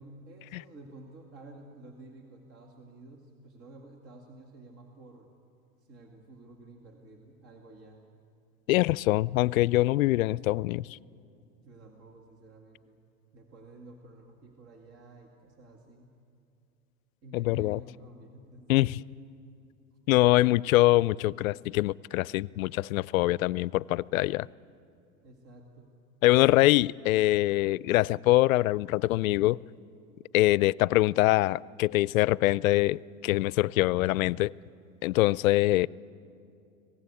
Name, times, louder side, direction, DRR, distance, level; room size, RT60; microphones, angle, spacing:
voice 1, 0.0-5.3 5.8-8.0 11.6-13.0 13.3-16.2 17.2-19.2 20.3-20.7 25.2-25.9, right 2 dB, 35° right, 2.3 m, -51 dB
voice 2, 8.7-10.9 17.3-17.8 18.7-19.0 20.1-24.5 26.2-29.6 30.3-34.5 35.0-35.9, left 18 dB, 75° left, 0.5 m, -24 dB
25.5 x 18.0 x 8.4 m
hypercardioid pair, 120°, 41 cm